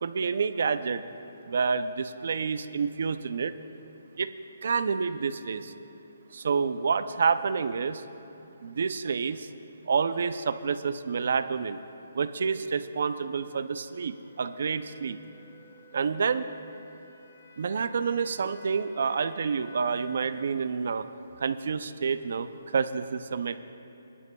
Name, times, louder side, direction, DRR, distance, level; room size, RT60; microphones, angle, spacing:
voice 1, 0.0-1.0 1.5-3.5 4.2-4.3 4.6-5.7 6.3-8.0 8.6-9.5 9.9-11.8 12.1-15.2 15.9-16.5 17.6-21.1 21.4-23.6, right 5 dB, 55° right, 12 dB, 0.4 m, -28 dB
sound 1, 10.7-20.6, equal, 50° left, 1.1 m, -54 dB
21.0 x 11.0 x 2.3 m, 2.8 s
hypercardioid pair, 170°, 0 cm